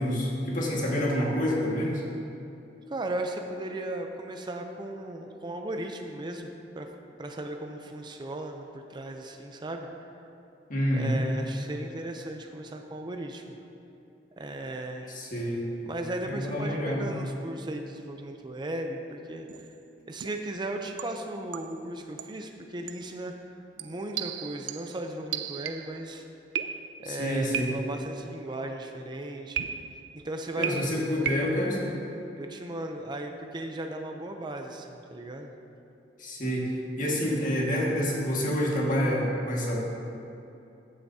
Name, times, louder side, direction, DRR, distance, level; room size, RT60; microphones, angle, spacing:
voice 1, 0.0-2.0 10.7-11.2 15.1-15.6 16.2-17.1 27.0-27.7 30.6-31.9 36.2-39.8, equal, 50° left, -3 dB, 1.8 m, -28 dB
voice 2, 2.9-6.5 6.7-6.9 7.2-9.9 10.9-13.6 14.4-15.2 15.8-19.5 20.1-23.3 23.8-26.2 27.0-29.7 30.1-30.7 32.4-35.5, right 1 dB, 25° right, 4 dB, 0.5 m, -36 dB
sound 1, 19.5-19.7 20.2-20.5 21.0-21.9 22.2-22.5 22.9-23.1 23.8-26.0 26.6-27.1 27.5-28.1 29.6-30.1 30.6-31.7, right 8 dB, 85° right, 0.4 m, -35 dB
14.5 x 8.1 x 2.8 m, 2.8 s
head